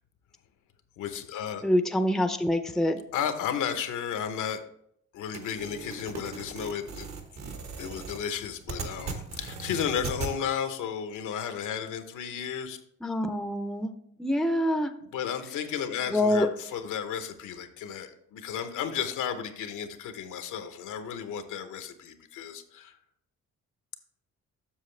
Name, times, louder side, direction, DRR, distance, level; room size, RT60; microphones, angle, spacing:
voice 1, 1.0-1.6 3.1-4.6 5.1-7.1 7.8-12.8 15.1-23.0, left 8 dB, 80° left, 0.9 m, -33 dB
voice 2, 1.6-3.0 13.0-13.9 14.2-14.9 16.1-16.5, left 1 dB, ahead, 0.5 m, -25 dB
sound 1, 5.3-10.3, right 4 dB, 60° right, 1.2 m, -38 dB
7.4 x 6.5 x 3.2 m
cardioid pair, 90°, 30 cm